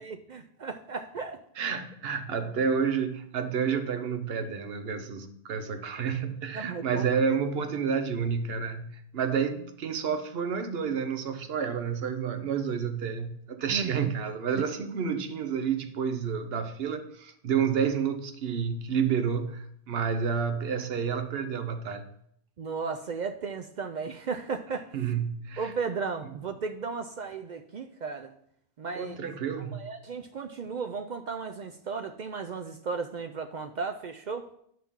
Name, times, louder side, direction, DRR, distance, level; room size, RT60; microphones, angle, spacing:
voice 1, 0.0-1.4 6.5-7.4 13.7-14.1 22.6-24.9 25.6-28.3 28.8-29.2 29.7-34.5, right 5 dB, 55° right, 0.6 m, -35 dB
voice 2, 1.6-22.1 24.9-25.7 28.9-29.9, right 6 dB, 70° right, 1.0 m, -30 dB
10.5 x 5.7 x 3.7 m
omnidirectional pair, 1.0 m